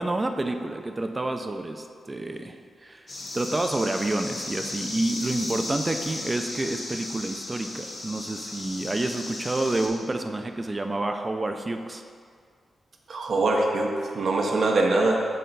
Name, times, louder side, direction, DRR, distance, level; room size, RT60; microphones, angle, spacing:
voice 1, 0.0-3.1 3.3-12.0, right 2 dB, 25° right, 6 dB, 0.6 m, -29 dB
sound 1, 3.1-9.9, left 2 dB, 50° left, 1.6 m, -35 dB
voice 2, 13.1-15.3, right 2 dB, 65° right, 1 dB, 0.9 m, -23 dB
6.5 x 3.8 x 5.5 m, 2.1 s
cardioid pair, 55°, 0 cm